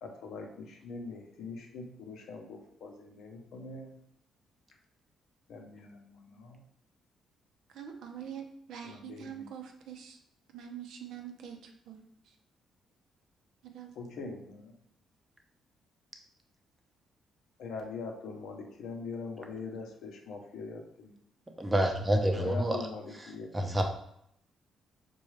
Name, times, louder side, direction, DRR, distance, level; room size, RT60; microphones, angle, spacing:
voice 1, 0.0-4.0 5.5-6.6 8.8-9.5 14.0-14.7 17.6-21.1 22.4-23.5, left 4 dB, 80° left, 2 dB, 0.7 m, -42 dB
voice 2, 7.7-10.2 10.5-12.0 13.6-13.9, right 8 dB, 80° right, 4 dB, 0.5 m, -44 dB
voice 3, 21.6-22.8 23.5-23.8, right 1 dB, 15° right, 3 dB, 0.7 m, -27 dB
4.6 x 2.2 x 3.1 m, 0.72 s
cardioid pair, 90°, 0 cm